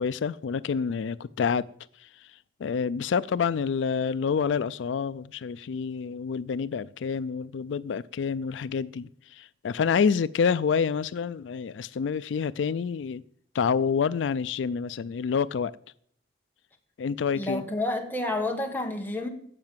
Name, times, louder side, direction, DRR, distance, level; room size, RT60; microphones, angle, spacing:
voice 1, 0.0-1.6 2.0-2.3 2.6-13.2 13.5-15.7 17.0-17.6, left 6 dB, 80° left, 0.4 m, -28 dB
voice 2, 17.3-19.3, left 2 dB, 10° left, 1.7 m, -29 dB
15.0 x 5.8 x 7.4 m
head